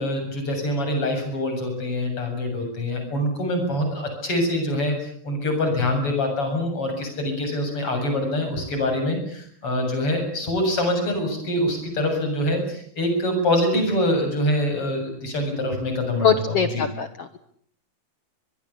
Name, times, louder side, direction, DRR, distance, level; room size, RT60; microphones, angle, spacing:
voice 1, 0.0-16.9, left 1 dB, 35° left, 5 dB, 8.3 m, -25 dB
voice 2, 16.2-17.4, left 7 dB, 70° left, 10 dB, 1.4 m, -22 dB
24.0 x 21.5 x 8.6 m, 0.63 s
omnidirectional pair, 4.6 m